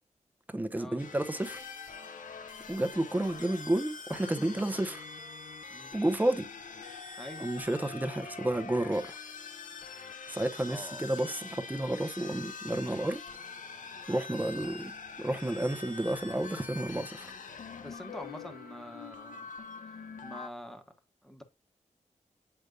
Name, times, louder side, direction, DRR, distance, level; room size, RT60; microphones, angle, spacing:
voice 1, 0.5-1.6 2.7-5.0 5.9-6.5 7.4-9.2 10.3-13.2 14.1-14.9 15.2-17.3, right 1 dB, 15° right, 0.8 m, -31 dB
sound 1, 1.0-20.5, left 5 dB, 90° left, 0.9 m, -44 dB
voice 2, 10.7-11.1 17.8-19.5 20.2-20.8 21.2-21.4, equal, 5° left, 1.1 m, -45 dB
8.0 x 5.1 x 2.3 m
wide cardioid pair, 130°, 13 cm